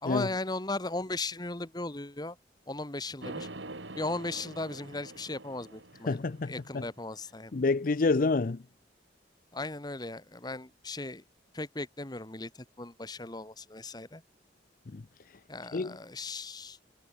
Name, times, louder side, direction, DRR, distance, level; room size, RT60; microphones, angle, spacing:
voice 1, 0.0-2.4 2.7-3.5 4.0-6.2 6.5-7.5 9.5-11.2 11.5-14.2 15.5-16.8, left 2 dB, 20° left, 1.5 m, -37 dB
sound 1, 3.2-7.3, right 2 dB, 90° right, 3.6 m, -45 dB
voice 2, 6.1-6.8 7.5-8.6 14.9-15.0 15.7-15.9, left 3 dB, 50° left, 0.5 m, -28 dB
head